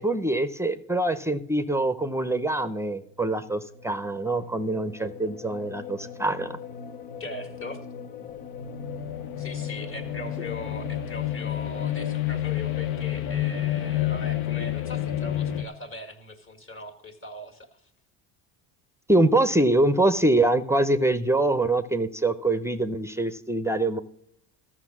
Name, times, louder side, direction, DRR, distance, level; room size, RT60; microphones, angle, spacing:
voice 1, 0.0-6.6 19.1-24.0, right 2 dB, 5° right, 11 dB, 0.6 m, -24 dB
sound 1, 3.7-15.6, left 11 dB, 80° left, 0.9 m, -31 dB
voice 2, 7.2-7.8 9.4-17.8, left 1 dB, 30° left, 6 dB, 2.0 m, -40 dB
13.0 x 6.3 x 6.0 m, 0.72 s
supercardioid pair, 95°, 42 cm